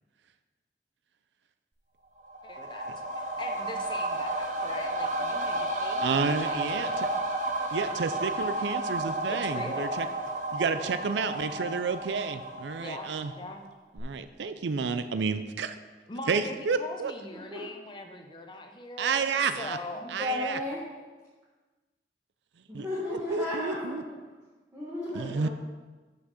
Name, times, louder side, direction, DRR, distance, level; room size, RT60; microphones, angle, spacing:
sound 1, 2.2-13.6 14.0-14.1, right 1 dB, 45° right, 0.8 m, -32 dB
voice 1, 2.4-7.1 9.3-10.1 10.7-11.0 12.8-13.7 16.1-20.0, left 2 dB, 25° left, 3 dB, 0.7 m, -41 dB
voice 2, 6.0-6.9 7.7-10.1 10.5-13.3 14.0-15.8 16.3-17.1 19.0-19.8 20.1-20.6 22.7-22.9 23.3-24.0 25.1-25.5, right 5 dB, 90° right, 10 dB, 0.4 m, -30 dB
voice 3, 20.0-20.8 22.7-24.2 24.7-25.5, left 1 dB, 15° right, -9 dB, 1.6 m, -34 dB
6.2 x 5.8 x 6.3 m, 1.3 s
head